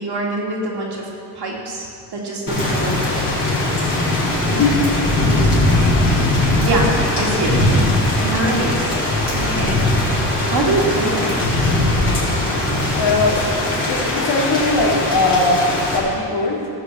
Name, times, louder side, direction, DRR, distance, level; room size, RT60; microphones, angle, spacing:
voice 1, 0.0-3.1 6.6-7.7 8.2-8.9 9.3-9.8 10.5-11.3 12.5-12.6, right 2 dB, 60° right, -2 dB, 2.8 m, -24 dB
Thunder / Rain, 2.5-16.0, left 1 dB, 25° left, 4.2 m, -19 dB
voice 2, 12.9-13.6 13.9-16.7, left 2 dB, 75° left, -4 dB, 3.4 m, -19 dB
17.5 x 6.6 x 8.1 m, 2.4 s
wide cardioid pair, 170°, 44 cm